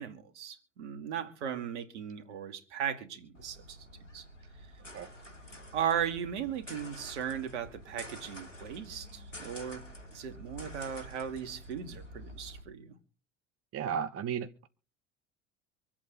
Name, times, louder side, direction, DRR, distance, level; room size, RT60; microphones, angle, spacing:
voice 1, 0.0-3.8 4.1-4.2 5.7-9.8 10.1-12.9, right 8 dB, 70° right, 2.3 m, -37 dB
sound 1, 3.3-12.6, equal, 90° left, 3.1 m, -48 dB
voice 2, 13.7-14.7, right 7 dB, 40° right, 1.1 m, -34 dB
25.5 x 8.5 x 3.9 m
figure-of-eight pair, 65°, 36 cm